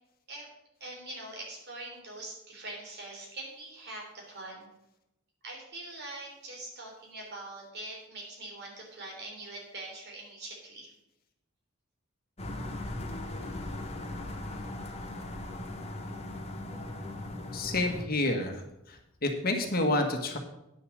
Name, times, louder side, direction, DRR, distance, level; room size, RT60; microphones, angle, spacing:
voice 1, 0.8-4.7 5.4-10.9, right 2 dB, 55° right, 0 dB, 3.4 m, -43 dB
sound 1, 12.4-18.0, left 1 dB, 30° left, 1.2 m, -38 dB
voice 2, 17.5-18.6 18.9-20.4, left 2 dB, 45° left, 4 dB, 1.5 m, -29 dB
9.8 x 6.8 x 6.5 m, 0.86 s
head